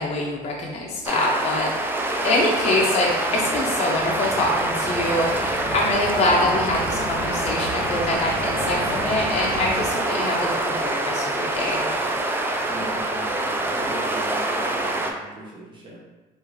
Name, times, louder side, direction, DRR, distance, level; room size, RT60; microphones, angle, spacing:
voice 1, 0.0-11.9, left 2 dB, 35° left, -2 dB, 0.5 m, -25 dB
sound 1, 1.1-15.1, right 2 dB, 15° right, 0.3 m, -25 dB
sound 2, 2.3-9.9, left 1 dB, 90° left, 0.6 m, -35 dB
voice 2, 12.7-16.0, right 1 dB, 30° right, -4 dB, 0.8 m, -38 dB
3.6 x 2.4 x 3.1 m, 1.2 s
cardioid pair, 110°, 17 cm